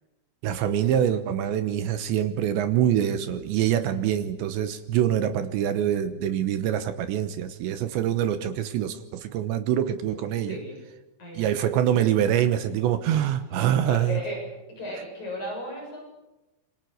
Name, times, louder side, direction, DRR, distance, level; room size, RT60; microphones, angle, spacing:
voice 1, 0.4-10.6 11.3-14.2, right 10 dB, 75° right, 10 dB, 3.0 m, -25 dB
voice 2, 10.4-10.8 11.2-11.5 13.8-14.4 14.8-16.0, left 1 dB, 35° left, -1 dB, 8.5 m, -35 dB
27.5 x 24.5 x 6.5 m, 1.0 s
omnidirectional pair, 5.8 m